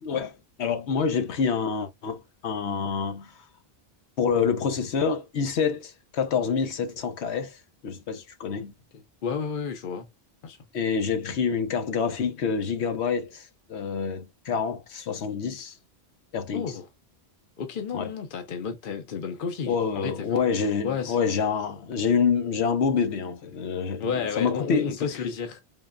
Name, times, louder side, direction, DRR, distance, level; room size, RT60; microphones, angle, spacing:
voice 1, 0.0-3.5 4.2-8.7 10.7-15.8 16.3-16.8 17.9-18.1 19.6-25.1, left 6 dB, 85° left, 1.1 m, -27 dB
voice 2, 9.2-10.1 10.4-10.6 16.5-16.8 17.6-20.4 20.8-21.2 24.0-25.6, left 6 dB, 55° left, 0.8 m, -31 dB
3.8 x 3.2 x 2.4 m
omnidirectional pair, 1.1 m